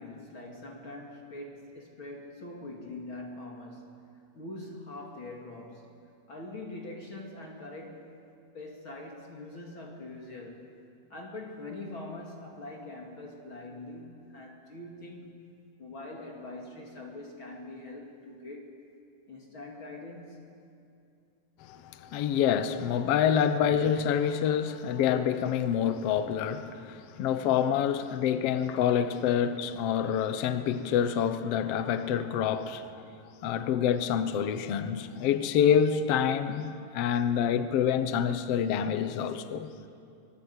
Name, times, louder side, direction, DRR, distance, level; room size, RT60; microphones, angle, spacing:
voice 1, 0.0-4.0 4.3-5.9 6.3-10.7 11.1-15.5 15.8-18.7 19.3-20.7, left 2 dB, 40° left, 2.7 m, -43 dB
voice 2, 21.6-32.9 33.4-39.7, left 8 dB, 75° left, 1.4 m, -27 dB
24.0 x 21.0 x 8.2 m
omnidirectional pair, 4.2 m